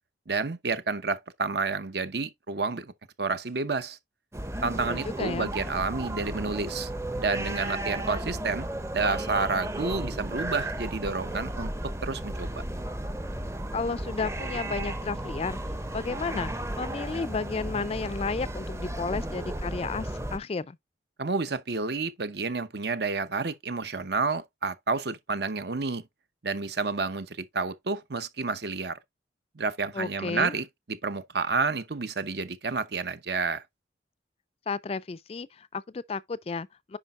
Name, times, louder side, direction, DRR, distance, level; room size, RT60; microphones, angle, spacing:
voice 1, 0.3-2.9 3.2-4.0 4.6-6.9 7.2-8.7 8.9-11.7 12.0-12.5 21.2-26.0 26.4-29.0 29.6-33.6, right 4 dB, 60° right, 0.8 m, -30 dB
sound 1, 4.3-20.4, right 1 dB, 15° right, 0.7 m, -34 dB
voice 2, 4.9-5.5 13.7-15.6 15.9-20.8 29.9-30.6 34.7-37.0, left 4 dB, 35° left, 0.4 m, -33 dB
9.9 x 5.1 x 2.5 m
head